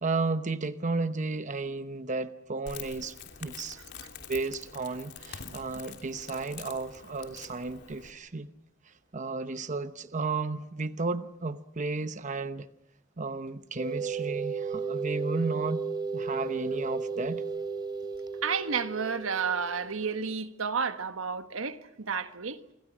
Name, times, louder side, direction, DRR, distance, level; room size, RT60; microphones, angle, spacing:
voice 1, 0.0-3.1 3.4-3.8 4.3-8.5 8.9-12.7 13.2-15.9 16.1-17.4, right 3 dB, 40° right, 0.9 m, -33 dB
Crackle, 2.7-8.1, left 6 dB, 55° left, 3.3 m, -46 dB
sound 1, 13.8-20.3, right 5 dB, 20° right, 3.2 m, -34 dB
voice 2, 18.4-22.6, right 6 dB, 90° right, 1.5 m, -31 dB
29.0 x 24.5 x 6.2 m
head